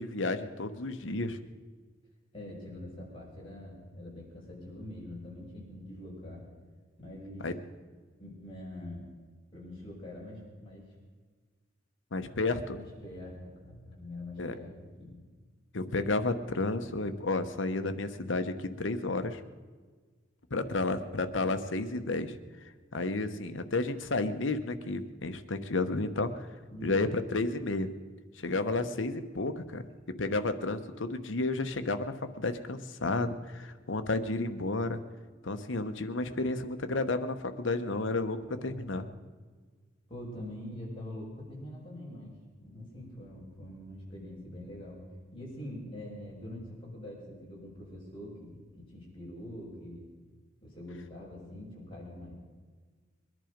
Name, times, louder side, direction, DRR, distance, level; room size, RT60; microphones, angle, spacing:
voice 1, 0.0-1.4 7.4-7.5 12.1-12.8 14.4-14.5 15.7-19.4 20.5-22.4 22.9-26.3 26.8-27.9 28.4-29.8 30.1-35.0 35.4-39.0, left 2 dB, 75° left, 9 dB, 1.1 m, -31 dB
voice 2, 2.3-6.5 7.0-7.5 8.2-9.1 9.5-10.9 12.7-15.2 20.6-20.9 26.7-27.1 38.5-39.0 40.1-45.0 45.3-50.1 50.6-52.3, left 1 dB, 25° left, -5 dB, 5.5 m, -44 dB
22.5 x 11.0 x 5.2 m, 1.4 s
head